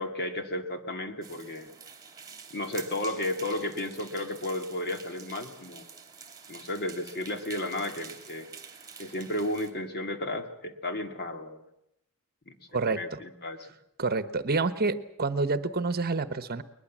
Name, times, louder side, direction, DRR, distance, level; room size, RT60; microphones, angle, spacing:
voice 1, 0.0-1.7 2.5-5.9 6.5-8.5 9.0-11.6 12.5-12.6 12.9-13.7, left 1 dB, 50° left, 6 dB, 2.3 m, -33 dB
sound 1, 1.2-9.7, right 5 dB, 15° right, 2.8 m, -47 dB
voice 2, 12.7-13.2 14.0-16.6, right 3 dB, 45° right, 13 dB, 1.1 m, -28 dB
21.5 x 21.0 x 7.4 m, 0.81 s
head